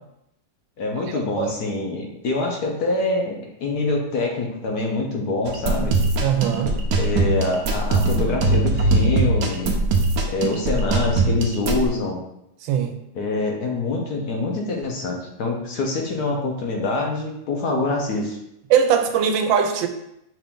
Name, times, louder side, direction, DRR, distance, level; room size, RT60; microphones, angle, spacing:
voice 1, 0.8-5.9 6.9-9.7 10.3-12.2 13.1-18.4, left 3 dB, 65° left, 0 dB, 1.2 m, -25 dB
sound 1, 5.5-11.9, right 2 dB, 65° right, 1.0 m, -21 dB
voice 2, 6.2-6.8 12.6-12.9 18.7-19.9, right 8 dB, 90° right, 6 dB, 1.3 m, -20 dB
5.8 x 2.6 x 3.5 m, 0.82 s
omnidirectional pair, 2.0 m